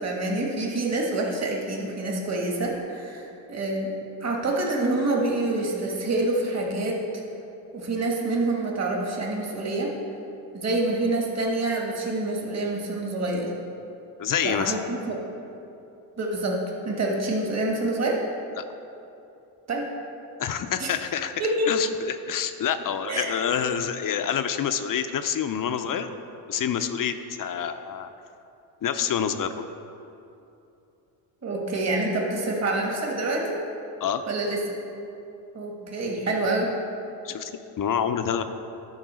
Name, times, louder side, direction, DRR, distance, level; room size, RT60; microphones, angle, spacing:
voice 1, 0.0-3.9 4.2-7.0 7.7-9.9 10.5-13.5 14.4-15.2 16.2-16.6 16.8-18.2 19.7-19.9 20.8-20.9 21.4-21.7 23.1-23.3 31.4-33.6 34.3-34.6 35.5-36.7, right 2 dB, 35° right, -1 dB, 1.6 m, -27 dB
voice 2, 14.2-14.8 18.6-18.7 20.4-26.1 26.5-28.1 28.8-29.7 34.0-34.2 37.2-37.5 37.8-38.4, left 8 dB, 45° left, 9 dB, 0.6 m, -27 dB
10.5 x 3.8 x 6.2 m, 2.8 s
supercardioid pair, 70°, 48 cm